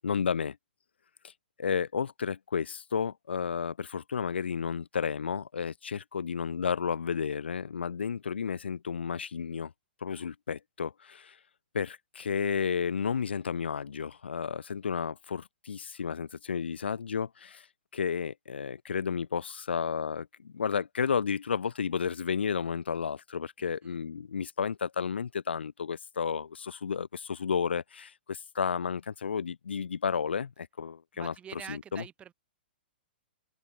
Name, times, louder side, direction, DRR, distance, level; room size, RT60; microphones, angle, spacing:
voice 1, 0.0-0.6 1.2-1.3 1.6-9.7 10.0-11.4 11.7-17.7 17.9-32.0, left 6 dB, 75° left, 0.6 m, -32 dB
voice 2, 23.6-24.0 31.2-32.3, right 9 dB, 20° right, 0.9 m, -46 dB
figure-of-eight pair, 115°, 6 cm